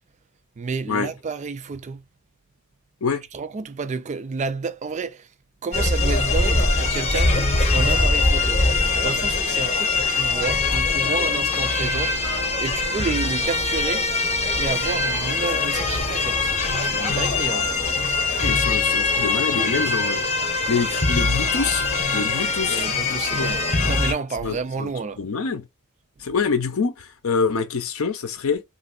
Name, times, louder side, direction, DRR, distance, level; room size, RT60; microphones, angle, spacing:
voice 1, 0.6-2.0 3.3-5.3 5.6-7.4 7.7-8.6 9.0-14.1 14.6-17.8 22.7-25.2, right 4 dB, 35° right, 0.4 m, -30 dB
sound 1, 5.7-24.1, left 3 dB, 30° left, 0.8 m, -22 dB
voice 2, 18.4-20.2 20.7-21.9 22.1-23.5 24.4-24.9 25.2-25.7 26.2-28.6, left 5 dB, 70° left, 0.6 m, -26 dB
3.0 x 2.6 x 2.4 m
head